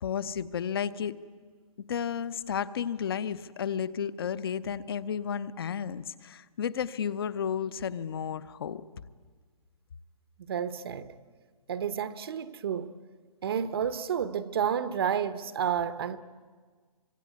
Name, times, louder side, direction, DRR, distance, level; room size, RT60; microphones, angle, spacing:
voice 1, 0.0-1.2 1.9-8.8, left 8 dB, 40° left, 0.8 m, -32 dB
voice 2, 10.5-11.1 11.7-12.9 13.4-16.2, right 8 dB, 40° right, 0.9 m, -30 dB
25.0 x 23.0 x 9.5 m
hypercardioid pair, 170°, 19 cm